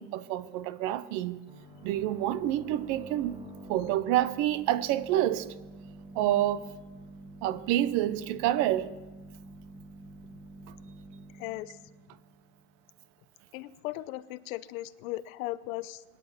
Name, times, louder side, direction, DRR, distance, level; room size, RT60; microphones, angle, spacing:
voice 1, 0.0-1.4 1.8-3.4 3.7-5.5 6.1-6.7 7.4-8.9, right 13 dB, 40° right, 0.7 m, -28 dB
sound 1, 1.5-12.9, right 1 dB, 10° right, 2.5 m, -48 dB
voice 2, 11.3-11.8 13.5-16.0, left 17 dB, 60° left, 0.8 m, -37 dB
23.5 x 10.0 x 5.8 m
supercardioid pair, 150°, 47 cm